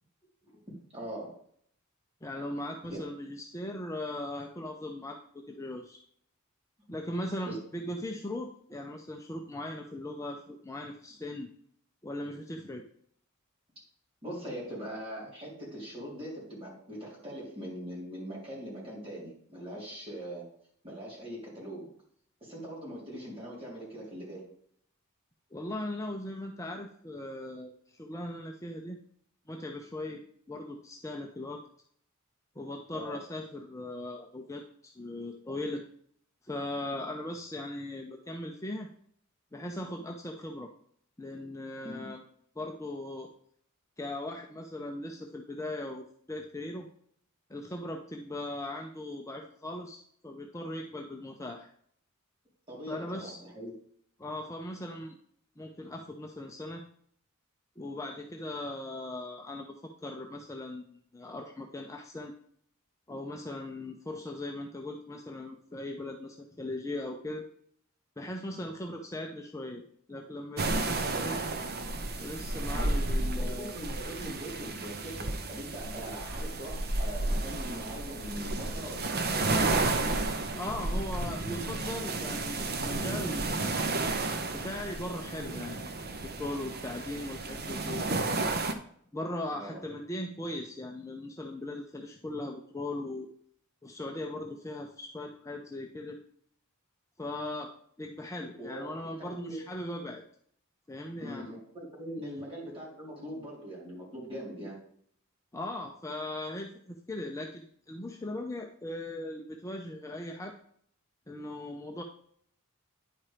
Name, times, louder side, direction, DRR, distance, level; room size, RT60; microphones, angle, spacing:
voice 1, 0.9-1.3 2.9-3.0 7.5-7.6 14.2-20.5 20.8-21.9 22.4-24.5 32.9-33.2 41.8-42.1 52.7-53.7 72.7-73.0 73.4-79.6 89.6-89.8 98.6-99.6 101.2-104.8, equal, 25° right, -5 dB, 3.7 m, -41 dB
voice 2, 2.2-5.2 5.5-6.0 6.9-11.5 12.0-12.8 25.5-29.0 29.5-30.2 30.5-31.6 32.6-35.8 36.4-38.9 39.5-40.7 41.2-42.2 42.6-43.3 44.0-46.9 47.5-51.7 52.9-53.4 54.2-55.2 55.6-56.8 57.8-62.3 63.1-67.5 68.2-69.8 70.1-71.5 72.2-73.8 80.6-83.7 84.5-85.8 86.4-88.3 89.1-93.3 93.8-96.2 97.2-97.7 98.0-100.2 100.9-101.5 102.2-102.3 105.5-110.6 111.3-112.0, left 1 dB, 15° left, 2 dB, 0.6 m, -39 dB
sound 1, 70.6-88.7, right 2 dB, 45° right, 0.8 m, -32 dB
9.9 x 4.4 x 4.9 m, 0.63 s
head